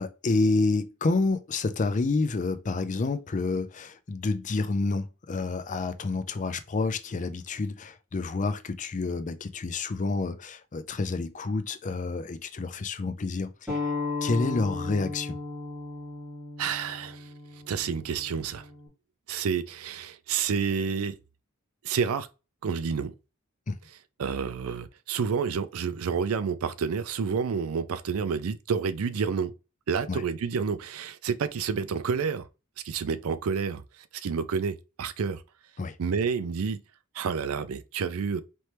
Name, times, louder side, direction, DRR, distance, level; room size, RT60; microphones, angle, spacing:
voice 1, 0.0-13.8 14.2-15.4 23.7-23.8 30.1-30.2 35.8-36.0, left 3 dB, 35° left, 0.4 m, -29 dB
sound 1, 13.7-18.9, left 3 dB, 5° right, 1.8 m, -35 dB
voice 2, 16.6-17.3 17.7-18.7 19.3-21.2 21.8-22.3 22.6-23.1 24.2-29.5 29.9-32.5 32.8-33.8 34.1-35.4 36.0-36.8 37.1-38.4, right 6 dB, 75° right, 0.4 m, -29 dB
4.3 x 3.1 x 3.2 m
head